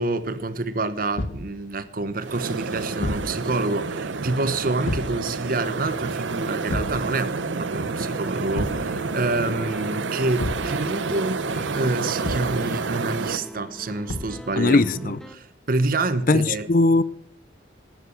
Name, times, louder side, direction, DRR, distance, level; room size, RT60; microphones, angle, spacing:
voice 1, 0.0-16.7, right 2 dB, 50° right, 0.9 m, -27 dB
Thump thud, 1.2-1.5 3.0-3.4 4.8-5.2 6.7-7.0 8.5-8.9 10.4-10.7 12.2-12.6 14.1-14.4, left 1 dB, 85° left, 1.1 m, -29 dB
sound 1, 2.2-13.4, right 4 dB, 80° right, 0.8 m, -29 dB
sound 2, 8.9-15.4, equal, 5° left, 0.7 m, -42 dB
voice 2, 14.6-15.2 16.3-17.0, left 3 dB, 45° left, 0.5 m, -19 dB
12.5 x 9.4 x 6.5 m
head